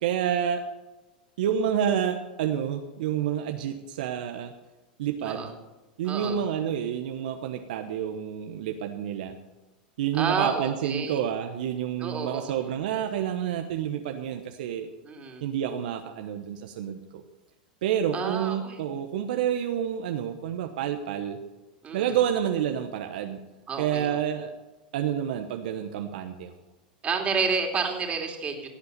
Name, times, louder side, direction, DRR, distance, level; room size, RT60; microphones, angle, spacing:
voice 1, 0.0-0.6 1.4-4.5 5.0-5.5 6.0-9.3 10.0-14.9 15.4-17.0 17.8-21.4 21.9-23.4 23.8-24.5 24.9-26.5, right 9 dB, 70° right, 5 dB, 1.0 m, -29 dB
voice 2, 6.0-6.4 10.1-11.2 12.0-12.5 15.0-15.4 18.1-18.8 21.8-22.2 23.7-24.2 27.0-28.7, right 5 dB, 25° right, 3 dB, 2.8 m, -30 dB
17.0 x 8.1 x 6.7 m, 1.1 s
hypercardioid pair, 100°, 5 cm